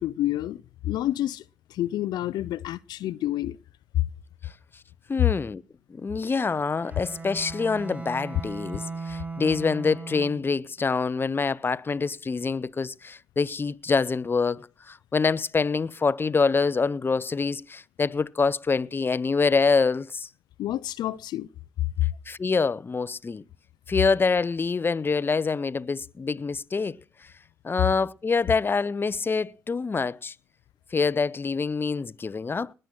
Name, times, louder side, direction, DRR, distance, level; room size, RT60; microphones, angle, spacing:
voice 1, 0.0-1.4 1.7-3.6 20.6-21.5, left 13 dB, 70° left, 0.6 m, -29 dB
voice 2, 5.1-5.6 5.9-20.3 22.3-23.4 23.9-27.0 27.6-30.3 30.9-32.7, left 4 dB, 30° left, 0.8 m, -26 dB
Bowed string instrument, 6.8-10.6, right 4 dB, 20° right, 5.2 m, -37 dB
20.0 x 7.8 x 6.0 m
supercardioid pair, 60°, 7 cm